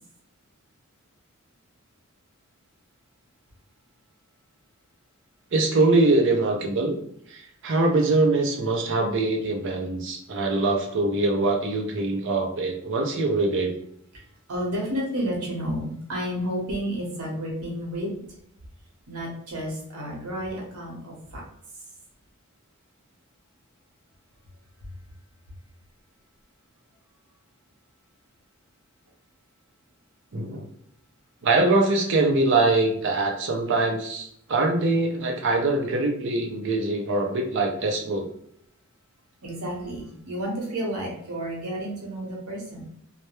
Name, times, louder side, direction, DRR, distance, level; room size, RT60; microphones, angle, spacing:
voice 1, 5.5-7.0 7.3-13.7 30.3-30.7 31.4-38.3, right 2 dB, 55° right, 3 dB, 0.5 m, -23 dB
voice 2, 14.5-18.2 19.1-21.4 39.4-42.9, equal, 85° right, -2 dB, 0.9 m, -31 dB
2.2 x 2.1 x 2.9 m, 0.68 s
head